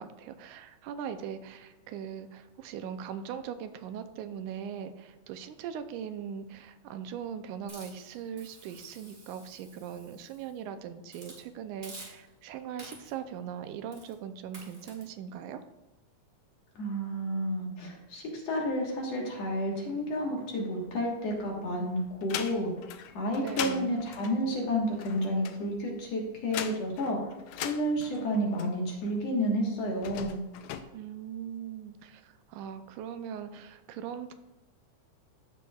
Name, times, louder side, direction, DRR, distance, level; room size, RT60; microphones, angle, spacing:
voice 1, 0.0-15.6 23.4-24.0 30.9-34.3, right 8 dB, 80° right, 9 dB, 2.0 m, -40 dB
Hiss, 7.7-10.6 11.1-11.4 11.8-12.4 12.8-13.3 13.9-14.2 14.5-15.0, right 2 dB, 20° right, 2.5 m, -50 dB
voice 2, 16.8-22.7 23.1-27.3 27.6-30.4, equal, 60° left, -1 dB, 2.4 m, -31 dB
sound 1, 20.8-21.7 22.1-29.1 29.9-30.8, left 10 dB, 80° left, 1.9 m, -40 dB
15.0 x 6.1 x 2.3 m, 0.99 s
omnidirectional pair, 3.6 m